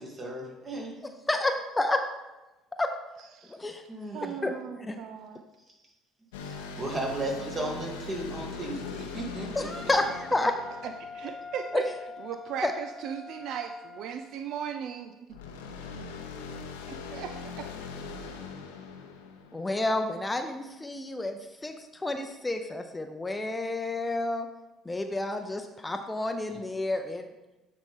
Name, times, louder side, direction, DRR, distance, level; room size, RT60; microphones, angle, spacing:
voice 1, 0.0-0.9 3.9-4.4 5.7-5.8 6.4-9.9 26.5-26.6, right 1 dB, 35° right, 0 dB, 1.9 m, -35 dB
voice 2, 1.3-2.0 2.8-2.9 3.5-3.8 4.4-4.5 4.8-5.0 9.5-9.6 9.9-10.5 11.7-11.8 12.6-12.7 19.5-24.5 24.9-27.2, left 2 dB, 15° left, 6 dB, 0.6 m, -30 dB
voice 3, 4.1-5.4 10.8-11.9 12.2-15.2 16.9-18.0, right 8 dB, 65° right, 7 dB, 0.3 m, -37 dB
sound 1, 6.3-11.8 15.3-20.1, left 4 dB, 85° left, 0.6 m, -41 dB
Wind instrument woodwind instrument, 9.6-14.1, left 4 dB, ahead, 1.9 m, -43 dB
8.7 x 4.1 x 3.7 m, 1.0 s
hypercardioid pair, 65°, 0 cm